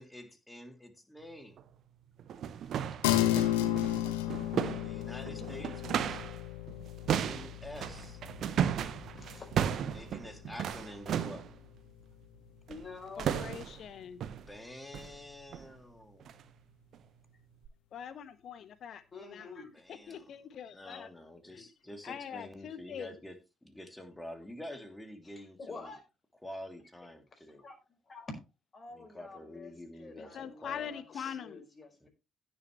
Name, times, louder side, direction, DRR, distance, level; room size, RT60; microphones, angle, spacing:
voice 1, 0.0-1.6 4.8-6.2 7.1-8.2 9.9-11.5 14.5-16.4 19.7-20.4 20.7-25.9 26.4-27.6 28.9-31.4 32.0-32.1, left 1 dB, 10° left, 2.7 m, -48 dB
sound 1, 1.6-1.7 2.2-6.4 6.7-11.5 12.7-12.9 13.2-13.8 14.2-14.5 14.9-15.2 15.5-15.7 16.2-16.4 16.9-17.0 17.6-17.7, right 9 dB, 55° right, 0.9 m, -35 dB
sound 2, 3.0-12.8, left 13 dB, 70° left, 1.0 m, -34 dB
voice 2, 9.1-9.5 10.6-10.7 12.7-13.3 19.1-19.7 21.4-21.9 25.2-26.0 27.4-27.8 28.0-28.3 28.7-32.1, left 3 dB, 30° left, 4.8 m, -48 dB
voice 3, 13.2-14.2 17.9-19.0 19.3-21.1 21.5-21.7 22.0-23.1 30.2-31.7, left 8 dB, 50° left, 1.2 m, -43 dB
16.0 x 7.0 x 3.1 m
figure-of-eight pair, 45°, 0 cm